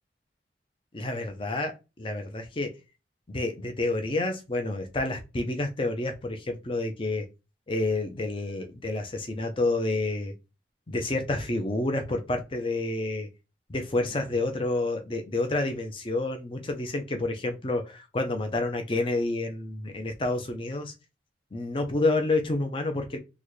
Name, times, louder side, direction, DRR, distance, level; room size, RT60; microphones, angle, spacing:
voice 1, 0.9-2.7 3.3-7.2 7.7-10.3 10.9-13.3 13.7-20.9 21.5-23.2, left 2 dB, 30° left, 5 dB, 0.5 m, -29 dB
3.9 x 2.2 x 3.1 m, 0.28 s
head